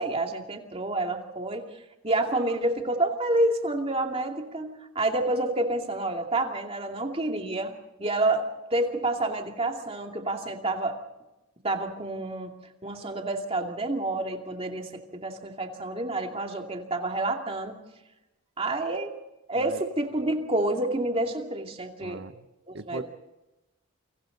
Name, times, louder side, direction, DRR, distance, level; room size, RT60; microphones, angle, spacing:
voice 1, 0.0-1.7 2.0-7.7 8.0-11.0 11.6-12.5 12.8-17.8 18.6-19.1 19.5-22.2 22.7-23.0, right 2 dB, 25° right, 3 dB, 2.5 m, -28 dB
voice 2, 22.0-22.5 22.7-23.0, right 3 dB, 55° right, 11 dB, 1.0 m, -39 dB
28.5 x 25.5 x 4.0 m, 1.0 s
head